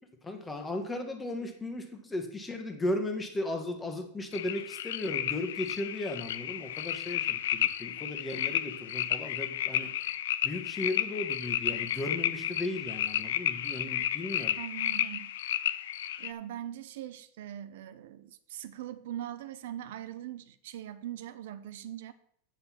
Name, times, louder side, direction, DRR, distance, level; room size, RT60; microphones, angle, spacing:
voice 1, 0.2-9.9 10.4-14.6, left 2 dB, 10° left, 1.4 m, -36 dB
sound 1, 4.3-16.3, left 11 dB, 85° left, 0.5 m, -32 dB
voice 2, 14.6-15.3 16.2-22.1, right 11 dB, 70° right, 0.7 m, -41 dB
8.1 x 6.6 x 5.9 m
supercardioid pair, 155°, 0 cm